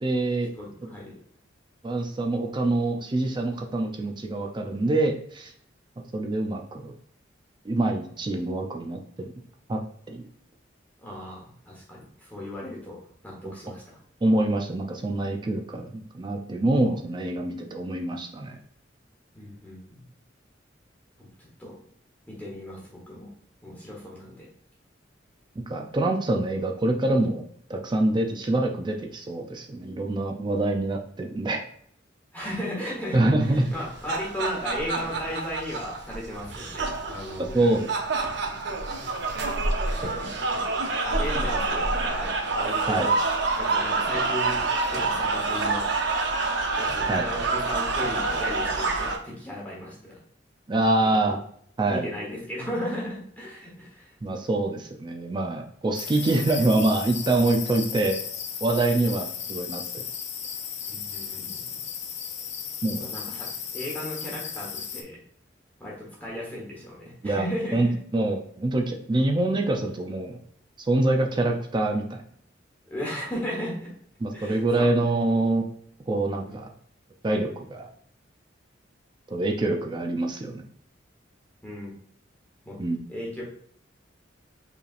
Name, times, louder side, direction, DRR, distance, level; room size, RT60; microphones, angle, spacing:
voice 1, 0.0-0.5 1.8-5.5 6.1-6.9 7.6-9.3 9.7-9.8 10.1-10.2 13.4-13.5 14.2-18.6 25.7-27.4 27.7-31.6 33.1-33.6 37.5-37.9 40.0-40.2 42.9-43.1 47.1-47.2 50.7-51.4 51.8-52.1 54.2-58.2 58.6-60.0 62.8-63.1 67.2-67.5 67.7-70.4 70.9-72.2 74.2-75.6 76.1-76.7 77.2-77.9 79.3-80.6 82.8-83.0, right 2 dB, 25° right, 3 dB, 0.4 m, -25 dB
voice 2, 0.5-1.2 11.0-14.0 19.3-20.0 21.2-21.8 22.3-23.3 23.6-24.5 32.3-37.9 40.0-40.6 41.0-43.1 43.6-44.6 44.9-45.9 46.8-50.2 51.0-51.2 51.9-54.2 58.8-58.9 60.9-61.6 63.0-65.2 65.8-67.9 72.9-73.9 74.3-74.9 76.4-76.6 81.6-81.9 82.6-82.8 83.1-83.4, left 1 dB, 10° left, -5 dB, 1.1 m, -36 dB
sound 1, 33.7-49.2, right 3 dB, 65° right, 0.7 m, -27 dB
sound 2, 55.9-65.0, left 7 dB, 40° left, 0.5 m, -35 dB
4.9 x 3.3 x 2.4 m, 0.64 s
head